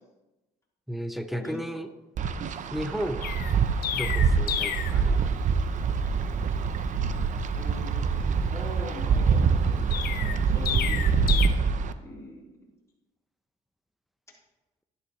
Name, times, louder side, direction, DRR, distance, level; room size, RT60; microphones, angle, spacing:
voice 1, 0.9-1.9 2.7-3.4 3.9-5.3, equal, ahead, 10 dB, 0.7 m, -34 dB
Wind, 2.2-11.9, right 5 dB, 45° right, 0.7 m, -25 dB
Chirp tweet, 3.2-5.0 9.9-11.5, left 11 dB, 65° left, 0.7 m, -31 dB
voice 2, 7.5-11.2 12.0-12.5, left 1 dB, 15° left, -4 dB, 3.8 m, -42 dB
11.5 x 11.0 x 3.2 m, 1.0 s
cardioid pair, 110°, 17 cm